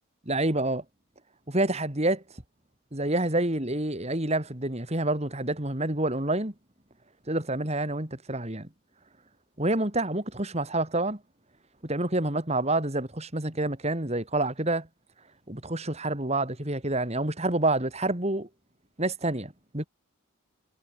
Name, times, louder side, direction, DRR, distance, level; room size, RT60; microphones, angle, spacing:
voice 1, 0.3-0.8 1.5-2.2 2.9-6.5 7.3-8.7 9.6-11.2 11.8-14.9 15.5-18.5 19.0-19.9, right 2 dB, 30° right, 2.9 m, -28 dB
head